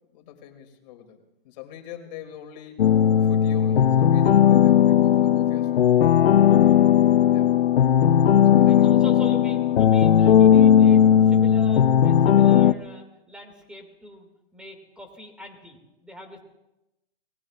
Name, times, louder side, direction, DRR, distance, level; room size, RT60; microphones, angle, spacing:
voice 1, 0.1-2.8 3.2-5.9 7.3-7.6 8.4-9.1, left 9 dB, 45° left, 4 dB, 2.8 m, -43 dB
sound 1, 2.8-12.7, left 9 dB, 80° left, 0.7 m, -17 dB
voice 2, 8.7-16.4, equal, 5° right, 4 dB, 2.3 m, -42 dB
26.5 x 20.0 x 2.5 m, 0.92 s
hypercardioid pair, 140°, 30 cm